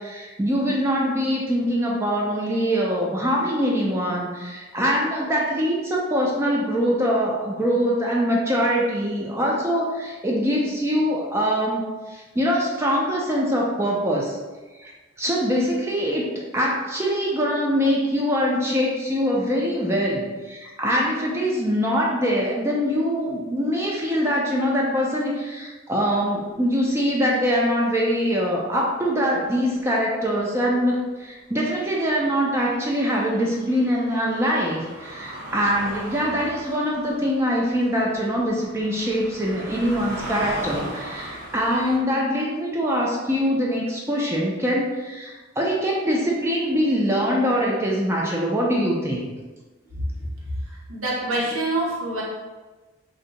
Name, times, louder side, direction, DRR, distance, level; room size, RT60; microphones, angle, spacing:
voice 1, 0.0-14.4 14.8-14.9 15.2-16.3 16.5-49.3, equal, 15° right, -3 dB, 0.4 m, -23 dB
sound 1, 29.6-29.7 32.1-42.0, right 1 dB, 55° right, 0.8 m, -38 dB
voice 2, 50.7-52.2, right 1 dB, 85° right, -4 dB, 0.9 m, -26 dB
2.6 x 2.1 x 3.8 m, 1.2 s
head